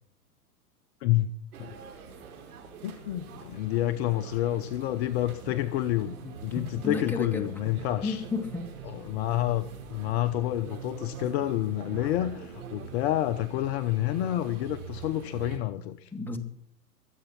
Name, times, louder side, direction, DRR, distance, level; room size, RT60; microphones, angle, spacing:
voice 1, 1.0-1.3 1.6-1.8 2.8-6.2 6.4-8.2 8.8-16.1, left 14 dB, 45° left, 10 dB, 0.8 m, -29 dB
sound 1, 1.5-15.6, right 6 dB, 70° right, 5.1 m, -44 dB
voice 2, 6.2-7.5 8.0-8.6 16.1-16.4, left 3 dB, 5° left, 3 dB, 1.9 m, -33 dB
22.5 x 8.2 x 5.8 m, 0.65 s
hypercardioid pair, 115°, 47 cm